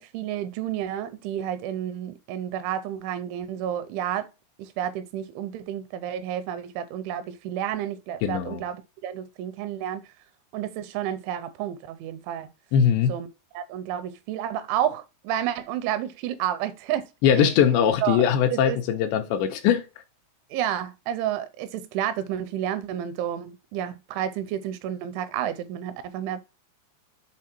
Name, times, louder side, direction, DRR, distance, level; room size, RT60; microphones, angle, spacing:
voice 1, 0.0-4.3 4.6-10.0 10.5-12.5 13.1-13.3 13.5-17.1 17.3-18.2 18.5-18.8 20.5-26.4, right 10 dB, 85° right, 2.9 m, -30 dB
voice 2, 8.2-8.6 12.7-13.2 17.2-19.8, left 8 dB, 80° left, 2.7 m, -21 dB
7.5 x 3.9 x 4.3 m
omnidirectional pair, 5.5 m